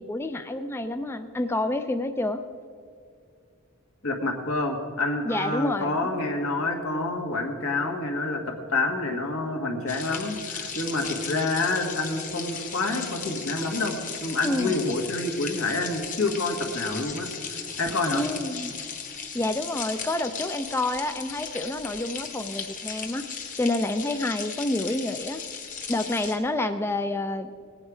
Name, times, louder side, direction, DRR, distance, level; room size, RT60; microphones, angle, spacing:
voice 1, 0.0-2.4 5.2-6.0 14.4-14.8 18.1-18.7 19.3-23.2 23.6-25.4 25.9-27.5, left 2 dB, 10° left, 8 dB, 0.3 m, -28 dB
voice 2, 4.0-13.9 14.2-18.2, left 2 dB, 85° left, 2 dB, 1.7 m, -28 dB
sound 1, 9.9-26.4, left 6 dB, 40° left, 1.3 m, -36 dB
18.0 x 8.8 x 4.9 m, 2.2 s
head